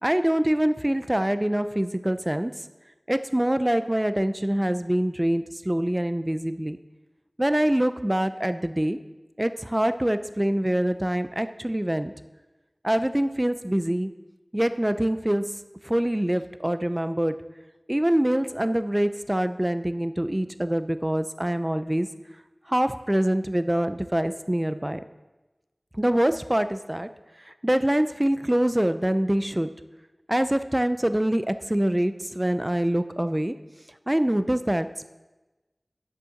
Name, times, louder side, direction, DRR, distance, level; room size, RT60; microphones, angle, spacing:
voice 1, 0.0-2.5 3.1-6.8 7.4-9.0 9.4-12.1 12.8-14.1 14.5-15.4 15.8-17.3 17.9-22.1 22.7-25.0 26.0-27.1 27.6-29.7 30.3-33.5 34.1-35.0, right 1 dB, 20° right, 11 dB, 0.6 m, -24 dB
9.9 x 8.4 x 6.5 m, 1.1 s
wide cardioid pair, 45°, 0 cm